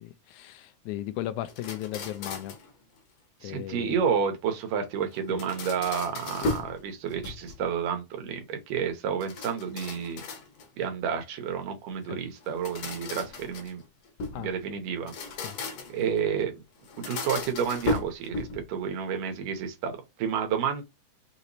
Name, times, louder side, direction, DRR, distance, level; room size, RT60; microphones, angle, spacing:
voice 1, 0.0-2.6 3.4-4.0 5.3-5.4 6.4-6.7 12.1-12.2 14.3-14.5 15.4-15.6, left 14 dB, 80° left, 1.9 m, -36 dB
sound 1, 1.5-2.7 5.1-6.8 7.1-7.7 9.2-10.8 12.4-14.4 15.0-16.1 16.8-18.7, left 3 dB, 60° left, 1.8 m, -35 dB
voice 2, 3.4-10.2 10.8-13.8 14.3-15.1 15.9-16.5 17.0-20.8, right 7 dB, 90° right, 2.7 m, -30 dB
6.0 x 3.0 x 2.6 m
omnidirectional pair, 3.6 m